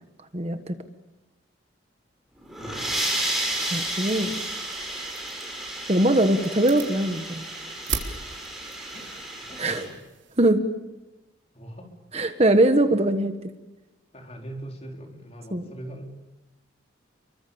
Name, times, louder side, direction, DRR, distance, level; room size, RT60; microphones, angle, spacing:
voice 1, 0.3-0.7 3.6-4.3 5.9-7.4 9.6-9.9 10.4-10.6 12.1-13.3 15.5-15.6, right 1 dB, 35° right, 8 dB, 1.5 m, -21 dB
sound 1, 2.4-9.9, right 1 dB, ahead, 7.1 m, -32 dB
voice 2, 2.6-2.9 8.9-9.1 9.4-10.0 11.5-11.9 14.1-16.1, right 1 dB, 35° left, 2 dB, 4.4 m, -41 dB
sound 2, 3.3-10.5, right 6 dB, 80° right, 3.8 m, -40 dB
29.5 x 23.5 x 7.1 m, 1.1 s
head